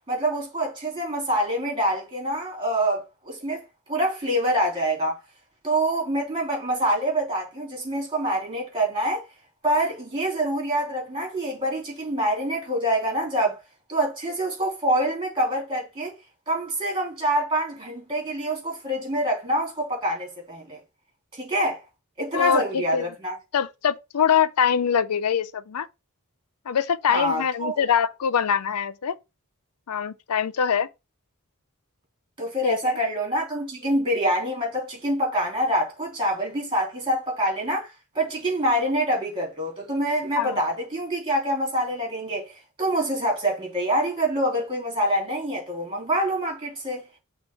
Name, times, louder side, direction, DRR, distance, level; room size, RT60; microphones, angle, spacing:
voice 1, 0.1-5.2 5.6-9.2 9.6-13.6 13.9-16.1 16.5-20.8 21.3-21.8 22.2-23.3 27.1-27.8 32.4-37.9 38.1-47.0, right 1 dB, 25° right, 3.3 m, -26 dB
voice 2, 22.3-23.1 23.5-25.9 26.7-29.2 29.9-30.9 32.6-32.9 40.4-40.6, left 7 dB, 85° left, 0.5 m, -23 dB
6.2 x 3.0 x 5.7 m
head